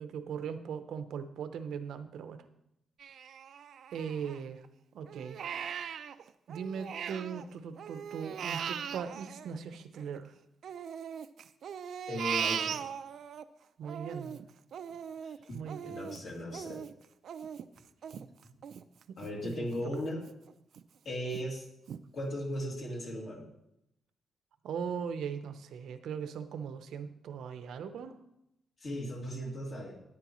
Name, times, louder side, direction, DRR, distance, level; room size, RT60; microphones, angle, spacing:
voice 1, 0.0-2.4 3.9-4.6 4.9-5.4 6.5-10.3 13.8-14.4 15.5-15.9 19.6-19.7 24.6-28.2, right 7 dB, 85° right, 9 dB, 0.8 m, -39 dB
Crying sobbing, 3.0-4.7 5.1-7.4 7.8-10.2 10.6-13.4 13.8-19.3 19.7-19.8 20.3-20.8 21.3-21.4 21.9-22.0, right 8 dB, 60° right, 0.4 m, -39 dB
voice 2, 12.1-12.8 15.2-15.3 15.8-16.8 19.2-20.2 21.0-21.6 22.1-23.4 28.8-30.0, equal, 45° left, -1 dB, 2.6 m, -37 dB
13.5 x 9.7 x 3.1 m, 0.82 s
wide cardioid pair, 160°, 0 cm